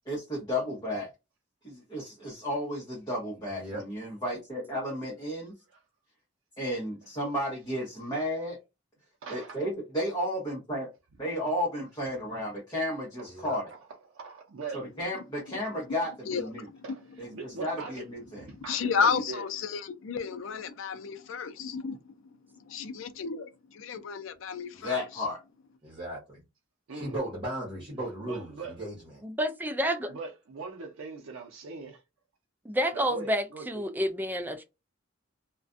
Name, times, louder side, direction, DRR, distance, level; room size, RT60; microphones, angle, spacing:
voice 1, 0.1-1.1 1.6-5.5 6.6-8.6 9.3-10.9 11.2-13.6 14.7-16.7 17.2-18.4 24.7-25.4, left 1 dB, 20° left, 0.9 m, -33 dB
voice 2, 3.5-3.8 13.3-13.6 25.8-26.4 26.9-29.0, right 1 dB, 25° right, 1.0 m, -36 dB
voice 3, 9.2-9.6 13.4-13.6 14.1-14.8 16.8-18.1 18.4-19.6 26.9-27.2 28.0-28.8 30.1-32.0 32.9-33.8, right 4 dB, 85° right, 0.5 m, -41 dB
voice 4, 16.3-16.8 18.7-22.0 22.7-25.0, left 6 dB, 70° left, 0.4 m, -32 dB
voice 5, 29.2-30.2 32.6-34.6, equal, 10° right, 0.4 m, -29 dB
2.4 x 2.2 x 2.4 m
head